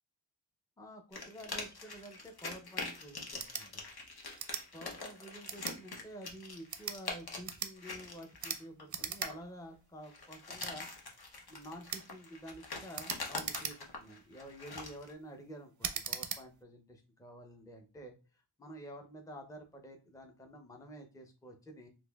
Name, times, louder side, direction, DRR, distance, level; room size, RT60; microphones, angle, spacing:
voice 1, 0.8-3.8 4.7-10.9 11.5-18.1 18.6-21.9, right 1 dB, 10° left, 3 dB, 0.6 m, -50 dB
sound 1, 1.1-9.4 10.0-15.1, left 3 dB, 55° left, 0.9 m, -44 dB
sound 2, 3.3-3.7 4.4-4.6 5.4-5.8 6.6-7.0 7.4-7.7 8.4-8.6 8.9-9.3 9.7-9.8 10.6-10.7 11.9-12.1 12.9-14.0 14.6-14.9 15.8-16.4, right 6 dB, 40° right, 0.5 m, -39 dB
4.0 x 2.6 x 2.3 m, 0.32 s
wide cardioid pair, 45°, 46 cm